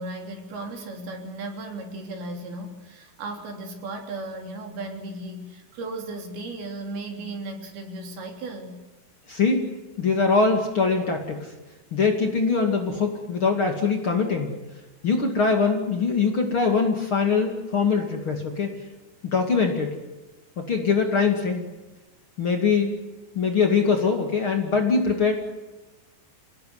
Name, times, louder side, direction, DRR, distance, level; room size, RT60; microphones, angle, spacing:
voice 1, 0.0-8.8, right 2 dB, 70° right, 3 dB, 5.3 m, -36 dB
voice 2, 9.3-9.6 10.0-11.5 11.9-14.5 15.0-18.7 19.2-19.9 20.6-21.7 22.4-22.9 23.3-25.3, left 5 dB, 40° left, 3 dB, 2.6 m, -22 dB
28.0 x 18.0 x 9.6 m, 1.1 s
omnidirectional pair, 4.6 m